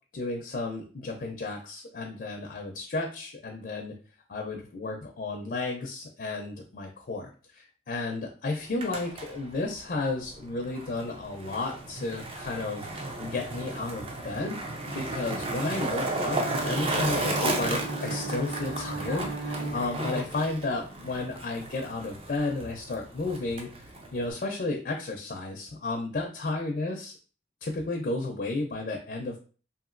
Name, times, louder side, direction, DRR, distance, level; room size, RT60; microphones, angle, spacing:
voice 1, 0.1-3.9 4.3-27.1 27.6-29.4, left 3 dB, 55° left, 1 dB, 0.4 m, -33 dB
Skateboard, 8.6-24.3, right 2 dB, 30° right, 0.4 m, -34 dB
Bowed string instrument, 15.9-20.5, right 3 dB, 80° right, 0.6 m, -37 dB
2.8 x 2.6 x 2.5 m, 0.38 s
head